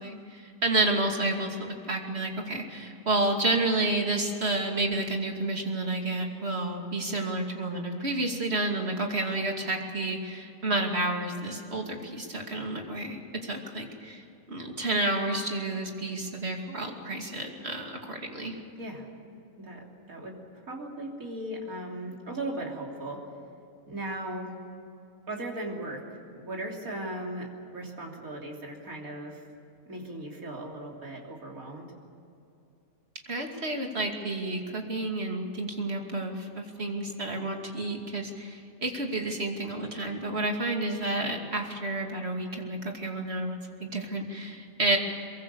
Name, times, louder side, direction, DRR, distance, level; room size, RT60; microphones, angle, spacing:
voice 1, 0.0-14.2 14.5-18.6 33.3-45.0, right 2 dB, 45° right, 2 dB, 2.8 m, -30 dB
voice 2, 19.6-20.4 20.7-23.2 23.9-24.5 25.3-29.4 29.9-31.9, right 1 dB, 75° right, -1 dB, 3.7 m, -37 dB
23.0 x 23.0 x 6.9 m, 2.8 s
omnidirectional pair, 1.5 m